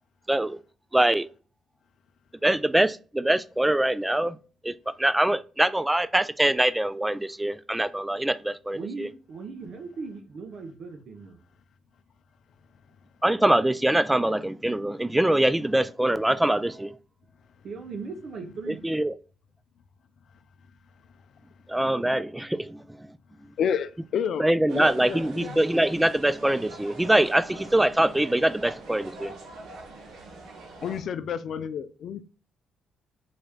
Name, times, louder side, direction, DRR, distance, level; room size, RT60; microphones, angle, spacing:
voice 1, 0.3-0.6 0.9-1.3 2.4-4.4 4.6-9.1 13.2-16.9 18.8-19.1 21.7-23.1 24.4-29.3, right 1 dB, 10° right, 0.3 m, -23 dB
voice 2, 8.7-11.4 17.6-18.8, right 4 dB, 60° right, 0.8 m, -38 dB
voice 3, 23.6-24.5 24.7-25.6 30.8-32.2, left 7 dB, 65° left, 0.4 m, -30 dB
sound 1, 24.7-31.0, right 2 dB, 80° right, 1.1 m, -43 dB
4.0 x 3.2 x 2.3 m
cardioid pair, 90°, 0 cm